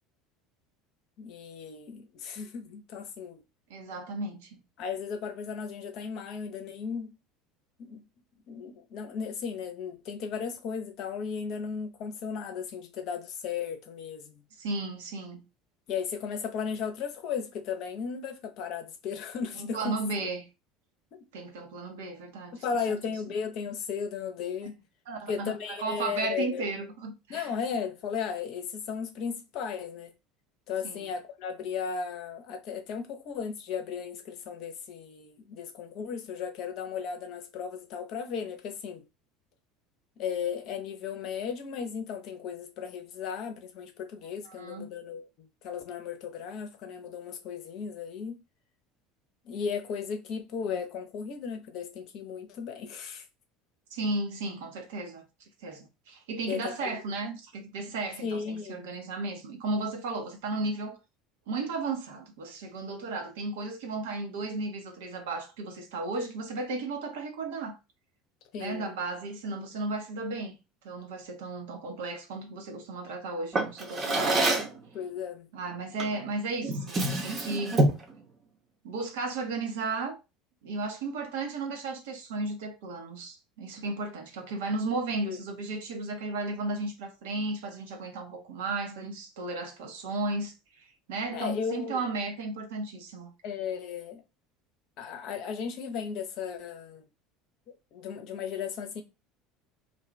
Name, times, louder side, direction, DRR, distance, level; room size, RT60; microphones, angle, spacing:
voice 1, 1.2-3.4 4.8-7.2 7.8-8.0 8.5-14.4 15.9-20.3 22.5-24.8 25.3-26.7 27.3-30.1 30.7-39.0 40.2-48.4 49.4-53.2 56.4-57.0 58.2-58.9 68.5-68.9 74.9-75.5 85.2-85.4 91.3-92.0 93.4-94.2 95.0-97.0 97.9-99.0, left 6 dB, 50° left, 0.7 m, -35 dB
voice 2, 3.7-4.6 14.6-15.4 19.6-20.5 21.3-23.0 25.1-27.5 30.8-31.0 44.5-44.9 53.9-55.2 55.6-61.0 61.5-67.8 68.6-70.6 70.8-74.4 75.5-77.8 78.8-80.2 80.6-93.3, right 3 dB, 65° right, 0.7 m, -34 dB
Drawer open or close, 73.5-74.8 76.0-76.2 76.6-78.1, right 2 dB, 30° right, 0.8 m, -26 dB
2.6 x 2.3 x 3.1 m
figure-of-eight pair, 70°, 0 cm